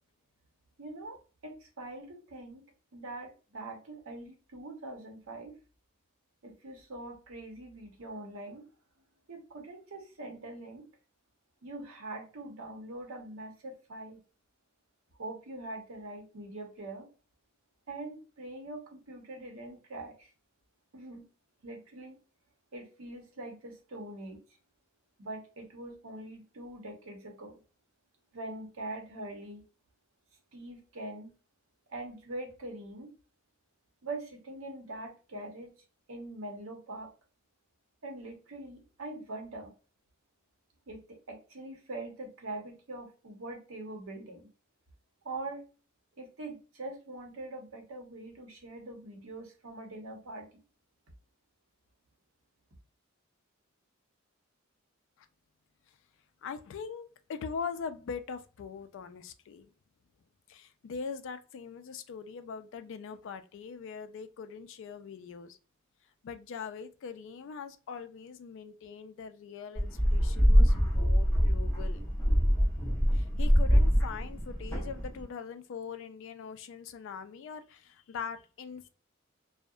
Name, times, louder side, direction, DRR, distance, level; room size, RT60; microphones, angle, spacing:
voice 1, 0.8-1.2 1.4-2.6 2.9-5.5 6.4-8.6 9.3-10.9 11.6-14.2 15.2-17.1 17.9-20.3 20.9-21.3 21.6-22.2 22.7-24.4 25.2-27.6 28.3-29.6 30.5-31.3 31.9-33.1 34.0-35.7 36.1-37.1 38.0-39.7 40.9-44.5 45.2-45.6 46.2-50.6, right 2 dB, 75° right, 0.8 m, -43 dB
voice 2, 56.4-59.7 60.5-65.6 66.2-72.0 73.1-78.9, left 6 dB, 65° left, 0.3 m, -42 dB
sound 1, 69.8-75.2, equal, 15° left, 0.8 m, -24 dB
2.7 x 2.0 x 2.3 m
head